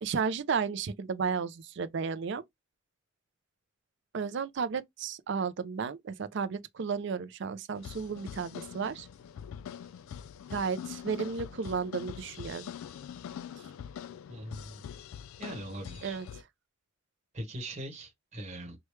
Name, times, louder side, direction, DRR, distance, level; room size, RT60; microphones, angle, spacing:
voice 1, 0.0-2.4 4.1-9.1 10.5-12.7 16.0-16.3, right 5 dB, 60° right, 0.4 m, -33 dB
sound 1, 7.8-16.4, left 8 dB, 90° left, 0.3 m, -44 dB
voice 2, 14.3-14.8 15.4-16.2 17.3-18.8, right 1 dB, 35° right, 1.2 m, -41 dB
3.1 x 2.2 x 3.1 m
head